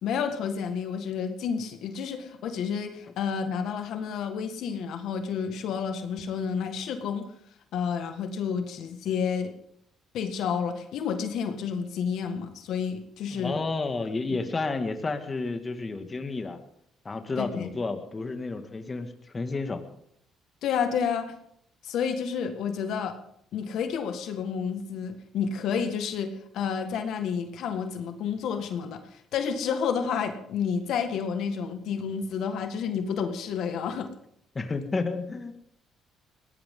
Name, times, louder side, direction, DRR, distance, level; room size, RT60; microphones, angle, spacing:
voice 1, 0.0-7.2 7.7-9.5 10.1-13.6 17.4-17.7 20.6-21.3 21.8-23.1 23.5-34.1, left 6 dB, 75° left, 6 dB, 1.7 m, -30 dB
voice 2, 13.3-16.6 17.1-19.8 34.6-35.5, left 3 dB, 25° left, 6 dB, 1.9 m, -31 dB
21.5 x 17.0 x 3.8 m, 0.69 s
cardioid pair, 100°, 0 cm